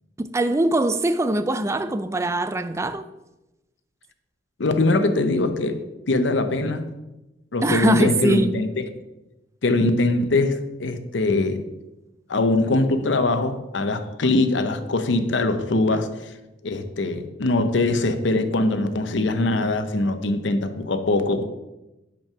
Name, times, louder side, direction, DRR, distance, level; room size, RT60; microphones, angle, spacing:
voice 1, 0.2-3.0 7.6-8.6, right 1 dB, 15° right, 0.3 m, -22 dB
voice 2, 4.6-6.9 7.5-8.7 9.6-11.7 12.3-16.3 16.6-21.4, left 2 dB, 75° left, 0.7 m, -22 dB
5.4 x 5.3 x 6.0 m
head